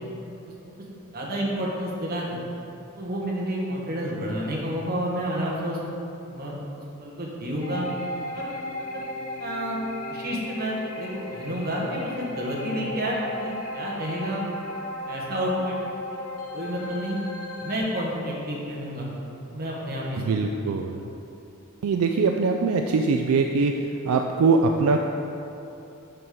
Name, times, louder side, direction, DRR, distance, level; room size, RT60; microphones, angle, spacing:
voice 1, 1.1-2.4 2.9-5.8 6.3-6.5 7.0-7.9 8.3-8.5 8.9-9.0 9.4-9.8 10.1-14.4 15.1-15.8 16.5-17.2 17.6-19.1 19.5-20.5, equal, 45° right, -4 dB, 1.3 m, -30 dB
sound 1, 7.6-17.8, left 1 dB, 80° left, 0.9 m, -36 dB
voice 2, 20.2-21.0 21.8-25.0, right 4 dB, 75° right, 3 dB, 0.3 m, -22 dB
6.7 x 5.8 x 3.8 m, 2.8 s
head